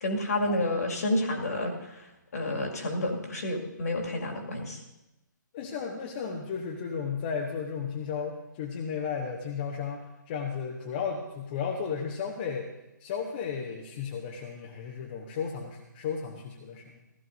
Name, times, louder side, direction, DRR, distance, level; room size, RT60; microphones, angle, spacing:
voice 1, 0.0-4.8, left 1 dB, 50° left, 1 dB, 2.2 m, -30 dB
voice 2, 5.5-12.7 13.0-17.0, left 6 dB, 30° left, 0 dB, 1.1 m, -34 dB
16.0 x 13.5 x 2.7 m, 0.96 s
figure-of-eight pair, 135°, 11 cm